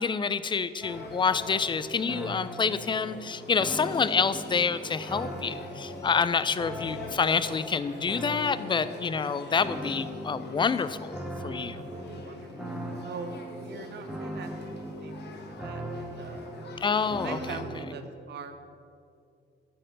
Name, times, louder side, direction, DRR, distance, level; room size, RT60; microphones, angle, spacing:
voice 1, 0.0-11.8 16.8-17.4, left 5 dB, 25° left, 14 dB, 0.4 m, -27 dB
sound 1, 0.8-17.9, equal, 5° right, 1.1 m, -40 dB
Male speech man speaking / Child speech kid speaking / Conversation, 0.9-17.6, left 3 dB, 55° left, 1.3 m, -46 dB
voice 2, 11.7-16.5 17.2-18.6, right 5 dB, 60° right, 8 dB, 0.8 m, -43 dB
11.5 x 4.3 x 6.7 m, 2.4 s
cardioid pair, 90°, 20 cm